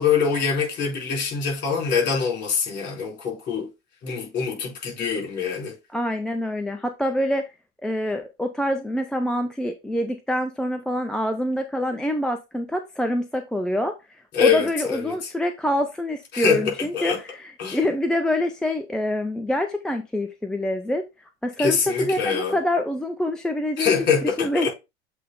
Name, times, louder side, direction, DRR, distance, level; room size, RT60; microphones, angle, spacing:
voice 1, 0.0-3.7 4.0-5.7 14.3-15.3 16.3-17.2 17.6-17.8 21.6-22.6 23.8-24.7, left 6 dB, 30° left, 4.3 m, -24 dB
voice 2, 5.9-7.4 7.8-14.0 14.4-21.1 21.4-24.0 24.4-24.7, left 1 dB, ahead, 0.3 m, -26 dB
7.6 x 3.3 x 3.8 m
figure-of-eight pair, 90°, 34 cm